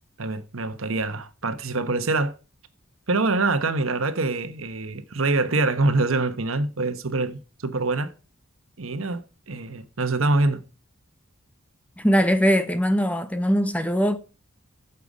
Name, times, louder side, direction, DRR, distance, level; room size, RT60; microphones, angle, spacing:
voice 1, 0.2-2.4 3.1-8.1 8.8-10.6, right 3 dB, 75° right, 1.1 m, -25 dB
voice 2, 12.0-14.2, equal, 5° left, 0.7 m, -21 dB
9.4 x 6.8 x 5.0 m
head